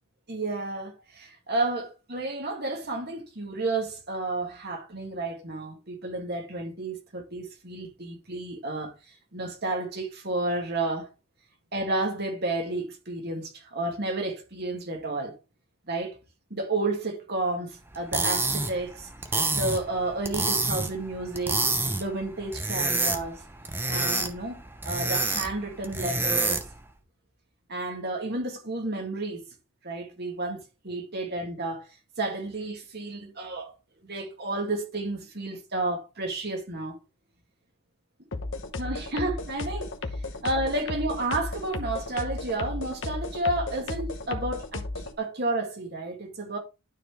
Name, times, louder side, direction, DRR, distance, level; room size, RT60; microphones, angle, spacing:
voice 1, 0.3-8.9 9.3-11.1 11.7-15.4 15.9-16.2 16.5-19.1 19.5-21.6 22.0-23.4 23.9-26.6 27.7-29.4 29.8-31.9 32.2-33.7 34.0-37.0 38.8-39.9 40.4-46.6, right 2 dB, 45° right, 2.2 m, -31 dB
sound 1, 17.9-26.8, right 3 dB, 10° right, 0.8 m, -28 dB
sound 2, 38.3-45.1, left 2 dB, 55° left, 1.0 m, -34 dB
12.0 x 4.3 x 3.4 m
head